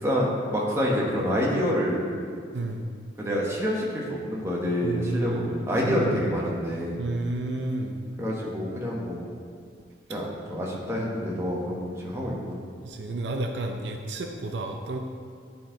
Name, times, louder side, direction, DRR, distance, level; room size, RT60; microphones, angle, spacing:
voice 1, 0.0-2.1 3.2-6.9 8.2-9.3 10.1-12.6, equal, 15° right, -4 dB, 1.1 m, -27 dB
voice 2, 2.5-2.8 4.8-6.2 7.0-8.0 11.0-11.1 12.8-15.0, right 2 dB, 70° right, 3 dB, 0.5 m, -31 dB
10.5 x 4.4 x 3.9 m, 2.2 s
head